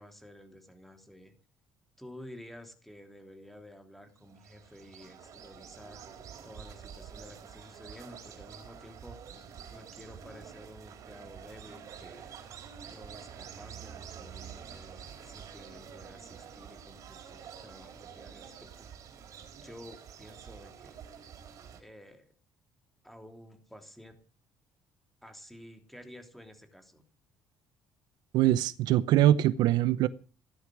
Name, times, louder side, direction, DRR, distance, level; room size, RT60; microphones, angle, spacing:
voice 1, 0.0-1.3 2.0-6.1 6.4-9.2 9.7-12.4 12.9-18.9 19.5-21.0 21.8-22.3 23.0-24.1 25.2-27.0, left 1 dB, ahead, 6 dB, 3.1 m, -51 dB
sound 1, 4.1-21.8, right 7 dB, 50° right, 4.0 m, -48 dB
voice 2, 28.3-30.1, right 13 dB, 75° right, 15 dB, 0.9 m, -23 dB
16.0 x 13.0 x 6.3 m, 0.37 s
cardioid pair, 150°, 7 cm